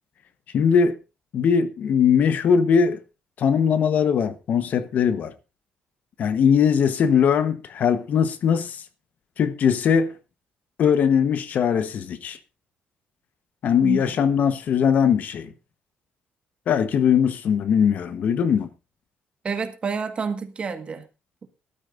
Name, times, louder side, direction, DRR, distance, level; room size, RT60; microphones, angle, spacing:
voice 1, 0.5-1.0 1.3-3.0 3.4-5.3 6.2-8.8 9.4-10.2 10.8-12.4 13.6-15.5 16.7-18.7, left 7 dB, 60° left, 1.1 m, -20 dB
voice 2, 13.8-14.1 19.4-21.0, right 5 dB, 35° right, 1.6 m, -29 dB
19.0 x 12.5 x 2.6 m
cardioid pair, 120°, 3 cm